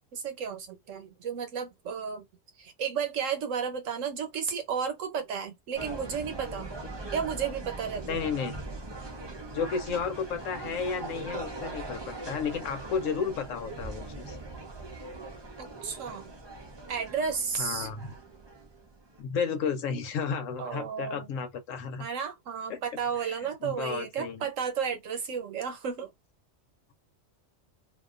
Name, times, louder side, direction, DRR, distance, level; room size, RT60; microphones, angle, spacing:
voice 1, 0.1-2.3 2.6-6.7 7.1-8.2 15.6-16.3 16.9-17.9 20.6-21.3 22.0-26.1, right 7 dB, 85° right, 1.1 m, -33 dB
sound 1, 5.7-19.2, right 2 dB, 40° right, 0.4 m, -41 dB
voice 2, 8.1-8.5 9.5-14.4 17.6-18.1 19.2-22.1 22.7-22.8 23.2-24.5, left 6 dB, 85° left, 1.0 m, -33 dB
2.6 x 2.2 x 2.4 m
omnidirectional pair, 1.3 m